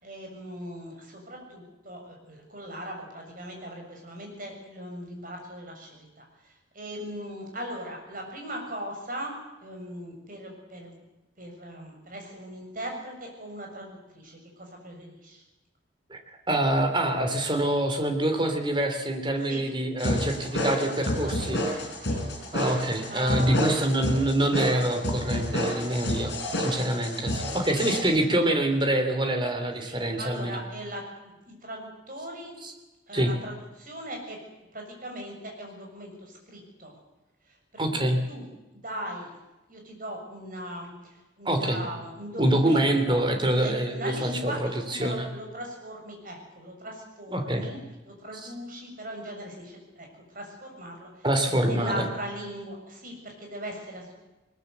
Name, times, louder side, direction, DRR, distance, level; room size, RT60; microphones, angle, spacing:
voice 1, 0.0-9.4 9.6-11.0 11.4-15.4 19.5-19.6 20.9-21.6 22.0-22.2 23.1-23.7 26.0-26.1 27.4-28.3 29.9-32.5 33.1-34.4 34.7-36.9 37.5-38.5 38.7-39.3 39.7-44.6 44.9-47.8 48.1-50.1 50.3-54.2, equal, 45° right, 2 dB, 7.0 m, -39 dB
voice 2, 16.5-21.6 22.5-30.6 32.6-32.7 33.1-33.3 37.8-38.2 41.4-41.8 42.4-45.3 47.3-47.7 48.3-48.5 51.2-52.1, right 1 dB, 25° right, 5 dB, 3.0 m, -25 dB
sound 1, 20.0-28.0, left 1 dB, 55° left, 7.6 m, -30 dB
21.0 x 20.5 x 8.1 m, 1.0 s
head